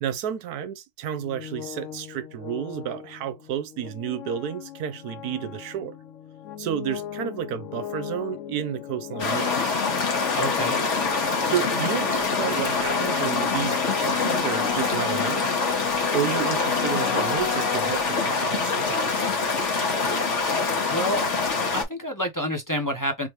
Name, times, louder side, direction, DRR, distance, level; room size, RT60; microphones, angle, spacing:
voice 1, 0.0-6.0 6.6-9.7 11.3-15.4 16.1-19.3, right 9 dB, 70° right, 1.1 m, -31 dB
sound 1, 1.1-18.8, left 12 dB, 70° left, 0.7 m, -36 dB
sound 2, 9.2-21.8, left 4 dB, 50° left, 1.4 m, -25 dB
voice 2, 10.4-10.8 20.9-21.2 21.7-23.3, equal, 25° left, 0.4 m, -28 dB
3.8 x 3.3 x 3.0 m
omnidirectional pair, 1.8 m